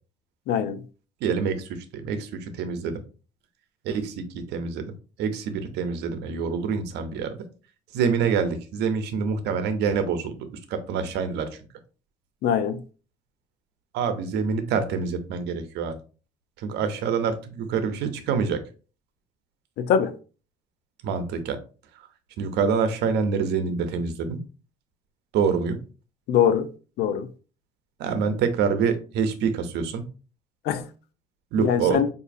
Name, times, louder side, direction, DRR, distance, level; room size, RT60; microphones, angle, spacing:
voice 1, 0.5-0.8 12.4-12.8 19.8-20.1 26.3-26.7 27.0-27.3 30.7-30.8 31.6-32.1, left 8 dB, 75° left, 0.5 m, -22 dB
voice 2, 1.2-3.0 3.8-4.9 5.2-7.4 7.9-11.5 13.9-16.0 16.6-18.6 21.0-21.6 22.4-24.4 25.3-25.8 28.0-30.0 31.5-32.0, right 6 dB, 80° right, 0.7 m, -26 dB
4.8 x 2.7 x 2.6 m
cardioid pair, 110°, 17 cm